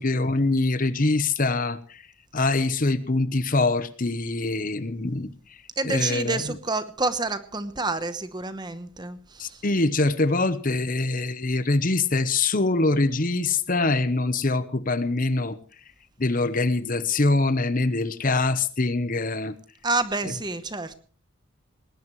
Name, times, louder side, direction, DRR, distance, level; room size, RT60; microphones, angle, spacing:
voice 1, 0.0-2.0 2.3-5.3 5.8-6.4 9.4-15.6 16.2-19.6, left 3 dB, 40° left, 13 dB, 0.9 m, -24 dB
voice 2, 5.8-9.6 19.8-21.0, right 3 dB, 20° right, 11 dB, 1.0 m, -28 dB
20.0 x 18.5 x 3.2 m, 0.39 s
head